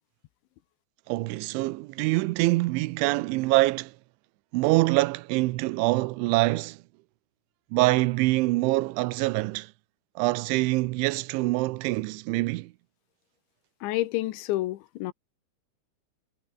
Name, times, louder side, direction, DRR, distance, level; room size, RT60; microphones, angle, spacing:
voice 1, 1.1-3.9 4.5-6.8 7.7-9.7 10.2-12.7, right 21 dB, 85° right, 3.1 m, -25 dB
voice 2, 13.8-15.1, left 16 dB, 80° left, 3.3 m, -29 dB
omnidirectional pair, 5.4 m